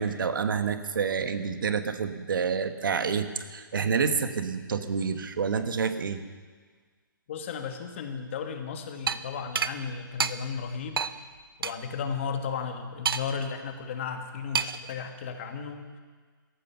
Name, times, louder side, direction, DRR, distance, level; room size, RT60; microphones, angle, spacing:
voice 1, 0.0-6.2, right 6 dB, 65° right, 9 dB, 1.4 m, -28 dB
voice 2, 7.3-11.0 11.6-15.9, left 6 dB, 35° left, 6 dB, 1.5 m, -34 dB
sound 1, 9.1-9.2 9.6-9.7 10.2-10.3 11.0-11.1 11.6-11.7 13.1-13.4 14.5-14.9, right 6 dB, 85° right, 0.8 m, -28 dB
17.5 x 14.5 x 5.7 m, 1.5 s
hypercardioid pair, 170°, 12 cm